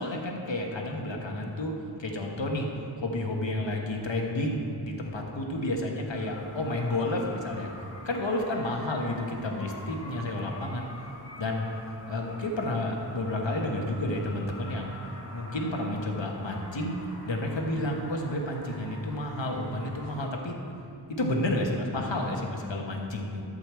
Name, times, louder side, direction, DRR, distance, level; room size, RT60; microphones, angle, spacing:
voice 1, 0.0-2.7 3.0-7.7 8.0-10.9 11.4-11.7 12.1-15.0 15.3-20.6 21.1-23.4, left 1 dB, 80° left, 0 dB, 1.4 m, -31 dB
sound 1, 6.1-20.2, left 1 dB, 35° left, 2.8 m, -46 dB
11.5 x 5.4 x 7.6 m, 2.5 s
wide cardioid pair, 40°, 43 cm